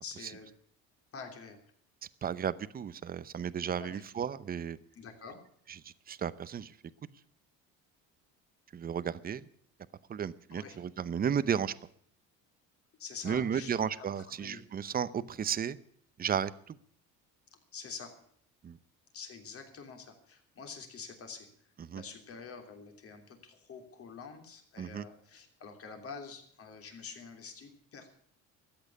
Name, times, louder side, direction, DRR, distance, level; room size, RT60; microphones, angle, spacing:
voice 1, 0.0-0.5 1.1-1.6 3.8-4.0 4.9-5.4 10.5-10.8 13.0-14.6 17.7-18.1 19.1-21.5 21.9-28.1, left 5 dB, 45° left, 4 dB, 3.2 m, -47 dB
voice 2, 2.2-4.8 5.7-6.7 8.7-9.5 10.1-11.7 13.2-15.8 16.2-16.8 18.6-18.8 21.8-22.0 24.8-25.1, right 8 dB, 30° right, 16 dB, 0.7 m, -34 dB
13.5 x 8.9 x 9.7 m, 0.63 s
cardioid pair, 120°, 32 cm